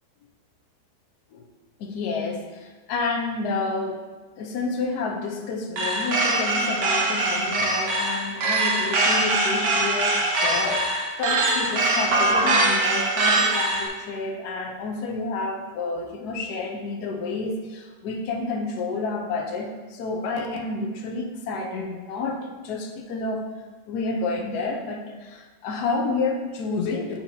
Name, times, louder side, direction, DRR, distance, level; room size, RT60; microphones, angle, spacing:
voice 1, 1.8-4.0 4.4-23.5 23.9-27.2, left 3 dB, 70° left, 2 dB, 1.2 m, -30 dB
sound 1, 5.8-13.9, right 2 dB, 80° right, 1.5 m, -22 dB
8.3 x 4.4 x 2.7 m, 1.3 s
omnidirectional pair, 1.8 m